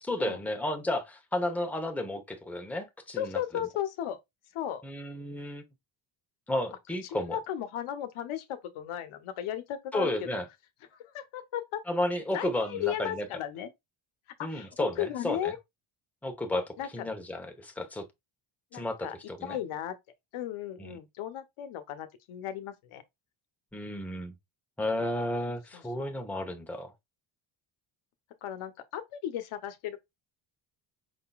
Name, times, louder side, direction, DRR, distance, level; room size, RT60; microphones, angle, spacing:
voice 1, 0.0-3.4 4.8-5.6 6.5-7.4 9.9-10.5 11.9-13.3 14.4-15.5 16.2-18.1 18.7-19.0 19.3-19.6 20.8-21.0 23.7-24.3 24.8-26.9, left 1 dB, 5° left, 0.9 m, -32 dB
voice 2, 3.2-4.2 4.5-4.8 7.1-10.3 11.1-11.8 12.3-13.7 14.4-15.6 16.8-16.9 18.7-19.1 19.4-20.0 20.3-23.0 25.7-26.1 28.4-30.0, left 11 dB, 80° left, 0.9 m, -35 dB
5.5 x 3.8 x 2.3 m
cardioid pair, 130°, 49 cm